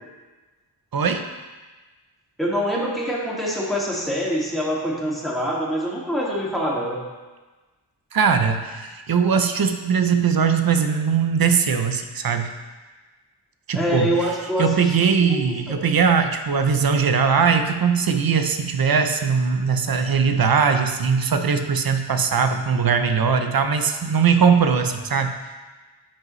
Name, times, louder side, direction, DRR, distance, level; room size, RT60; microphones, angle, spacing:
voice 1, 0.9-1.3 8.1-12.5 13.7-14.1 14.6-25.3, right 6 dB, 55° right, 7 dB, 0.7 m, -20 dB
voice 2, 2.4-7.0 13.7-14.9 15.3-15.4 15.7-15.9, equal, ahead, -6 dB, 2.2 m, -25 dB
10.0 x 5.3 x 3.2 m, 1.3 s
cardioid pair, 40°, 42 cm